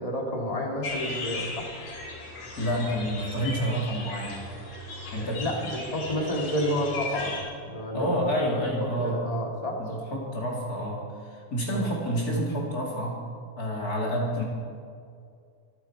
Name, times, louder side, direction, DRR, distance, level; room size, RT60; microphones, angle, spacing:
voice 1, 0.0-1.6 5.2-7.4 7.6-8.5 8.8-9.8 11.7-11.9, equal, 15° left, -1 dB, 1.7 m, -30 dB
sound 1, 0.8-7.4, left 3 dB, 85° left, 6.0 m, -37 dB
voice 2, 2.6-4.5 5.1-5.4 7.9-9.2 9.8-13.2 13.6-14.4, equal, 30° left, -2 dB, 2.5 m, -29 dB
24.5 x 10.0 x 4.6 m, 2.3 s
omnidirectional pair, 3.8 m